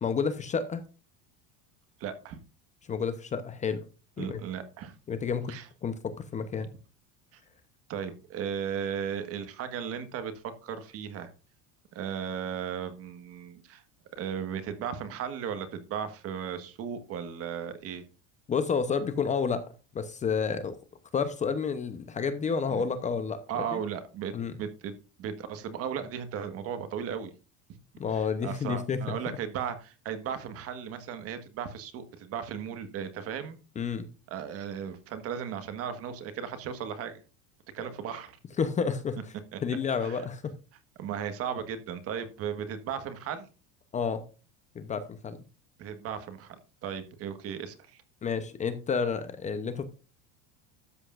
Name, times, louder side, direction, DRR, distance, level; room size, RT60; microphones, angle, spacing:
voice 1, 0.0-0.8 2.9-3.8 4.2-4.4 5.1-6.7 18.5-19.6 19.9-20.8 21.1-23.8 24.3-24.5 28.0-29.2 33.8-34.1 38.6-39.3 39.6-40.5 43.9-44.2 44.7-45.4 48.2-49.8, left 6 dB, 20° left, 11 dB, 0.8 m, -30 dB
voice 2, 2.0-2.4 4.2-4.9 5.5-5.7 7.3-7.4 7.9-10.3 10.6-11.3 11.9-13.8 14.2-18.0 22.7-22.8 23.5-27.3 28.4-33.6 34.3-37.2 37.7-38.4 39.5-39.6 40.0-40.2 41.0-43.5 45.8-48.0, right 8 dB, 40° right, 10 dB, 1.5 m, -36 dB
13.0 x 8.2 x 2.5 m, 0.33 s
cardioid pair, 155°, 35 cm